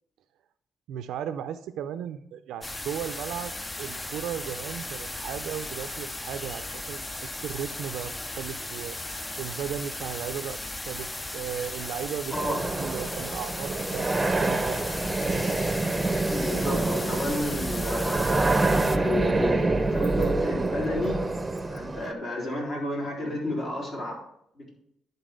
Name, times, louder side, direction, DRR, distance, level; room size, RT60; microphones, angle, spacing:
voice 1, 0.9-3.5 3.8-9.0 9.4-14.1 14.4-14.8 15.3-15.5, right 9 dB, 85° right, 9 dB, 0.4 m, -36 dB
sound 1, 2.6-19.0, left 2 dB, 15° left, 0.5 m, -36 dB
sound 2, 12.3-22.1, right 2 dB, 20° right, 0.7 m, -26 dB
voice 2, 16.3-18.3 19.0-21.3 21.6-24.3 24.6-24.8, left 1 dB, 45° left, -2 dB, 3.6 m, -31 dB
11.0 x 4.0 x 5.1 m, 0.73 s
cardioid pair, 90°, 0 cm